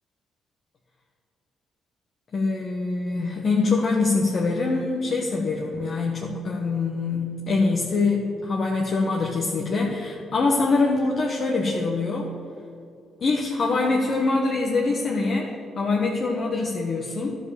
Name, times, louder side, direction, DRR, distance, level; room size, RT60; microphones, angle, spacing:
voice 1, 2.3-12.3 13.2-17.4, left 3 dB, 50° left, -1 dB, 1.2 m, -24 dB
11.5 x 5.1 x 6.9 m, 2.5 s
cardioid pair, 90°, 0 cm